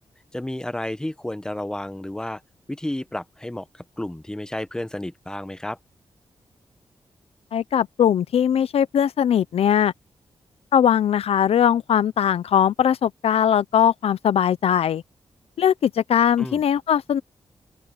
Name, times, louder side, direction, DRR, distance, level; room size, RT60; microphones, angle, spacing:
voice 1, 0.3-2.4 2.7-5.8 16.4-16.6, left 1 dB, 5° left, 1.0 m, -31 dB
voice 2, 7.5-9.9 10.7-15.0 15.6-17.2, left 9 dB, 80° left, 0.5 m, -20 dB
open air
wide cardioid pair, 145°, 10 cm